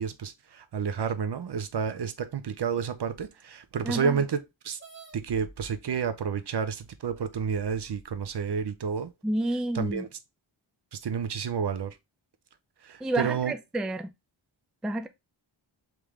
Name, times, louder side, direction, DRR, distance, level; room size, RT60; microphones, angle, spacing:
voice 1, 0.0-4.8 5.1-9.1 9.7-10.1 10.9-12.0 12.8-13.5, right 6 dB, 60° right, 0.6 m, -30 dB
voice 2, 3.8-4.2 9.2-10.0 13.0-14.1 14.8-15.1, right 1 dB, ahead, 0.3 m, -29 dB
sound 1, 4.8-5.2 6.2-6.3 6.9-7.0 7.6-8.3, right 5 dB, 25° right, 1.0 m, -50 dB
3.7 x 3.1 x 3.5 m
wide cardioid pair, 100°, 47 cm